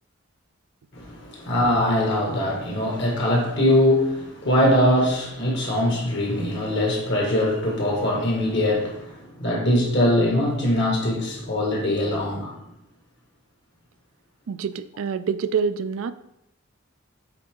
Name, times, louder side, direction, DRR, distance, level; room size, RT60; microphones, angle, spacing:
voice 1, 0.9-12.6, left 1 dB, 60° left, 0 dB, 1.8 m, -22 dB
voice 2, 14.5-16.1, right 6 dB, 70° right, 12 dB, 0.4 m, -26 dB
8.0 x 3.8 x 3.7 m, 0.84 s
head